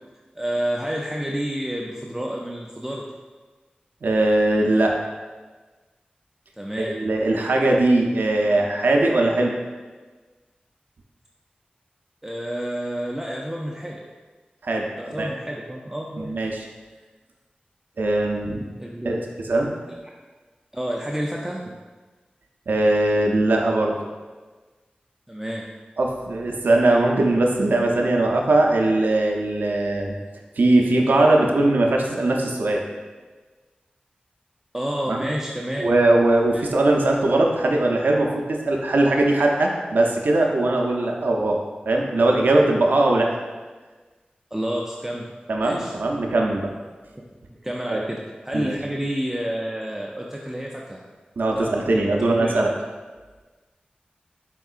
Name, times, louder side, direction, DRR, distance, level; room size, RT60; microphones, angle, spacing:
voice 1, 0.4-3.0 6.6-7.0 12.2-14.0 15.0-16.3 18.8-19.2 20.7-21.7 25.3-25.7 34.7-35.8 36.5-36.6 44.5-45.3 45.6-45.9 47.5-48.2 48.4-51.0 51.6-51.7 52.2-52.5, equal, 10° right, -2 dB, 0.4 m, -29 dB
voice 2, 4.0-4.9 6.8-9.5 14.6-15.3 16.2-16.7 18.0-18.6 19.1-19.2 19.5-19.7 22.7-24.0 26.0-30.2 30.6-32.8 35.1-35.2 35.8-41.6 41.9-43.3 45.5-46.7 47.9-48.1 48.5-48.8 51.4-52.7, right 2 dB, 85° right, 0 dB, 0.5 m, -20 dB
4.5 x 3.5 x 2.4 m, 1.3 s
wide cardioid pair, 55°, 3 cm